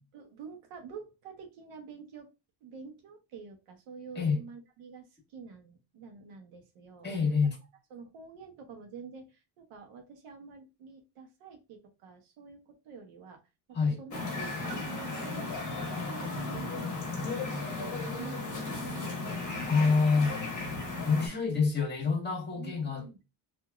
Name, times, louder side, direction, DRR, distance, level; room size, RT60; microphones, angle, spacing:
voice 1, 0.1-2.3 2.6-7.1 7.9-13.4 13.7-19.9 22.5-23.2, right 5 dB, 75° right, 1.0 m, -48 dB
voice 2, 7.0-7.6 13.7-14.0 19.7-20.3 21.0-23.2, left 4 dB, 20° left, 1.4 m, -27 dB
sound 1, 14.1-21.3, left 3 dB, 35° left, 1.0 m, -35 dB
3.0 x 2.7 x 2.3 m
cardioid pair, 125°, 50 cm